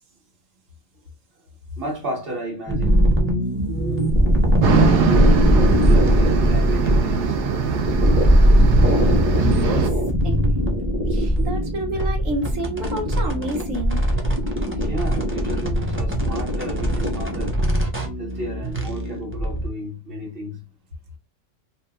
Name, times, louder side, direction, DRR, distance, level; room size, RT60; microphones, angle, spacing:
voice 1, 1.8-3.1 4.7-5.5 5.9-7.4 14.7-17.6 18.2-20.6, right 1 dB, 50° right, 1.4 m, -32 dB
sound 1, 2.7-19.7, equal, 15° right, 0.5 m, -20 dB
sound 2, 4.6-9.9, right 7 dB, 65° right, 0.9 m, -23 dB
voice 2, 10.2-10.6 11.0-14.0, right 1 dB, 85° right, 1.3 m, -29 dB
2.8 x 2.3 x 3.4 m
omnidirectional pair, 1.3 m